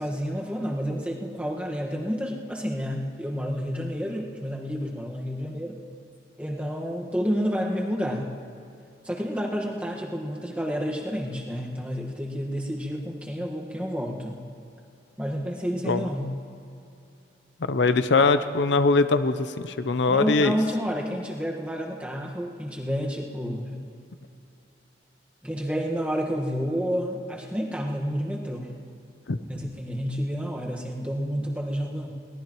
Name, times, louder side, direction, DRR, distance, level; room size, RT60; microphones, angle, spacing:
voice 1, 0.0-5.8 6.4-8.3 9.0-14.4 15.2-16.3 20.1-23.8 25.4-28.7 29.5-32.1, equal, 5° right, -1 dB, 1.4 m, -30 dB
voice 2, 17.6-20.6 29.3-29.4, left 3 dB, 85° left, 11 dB, 0.6 m, -22 dB
22.5 x 18.0 x 3.0 m, 2.6 s
head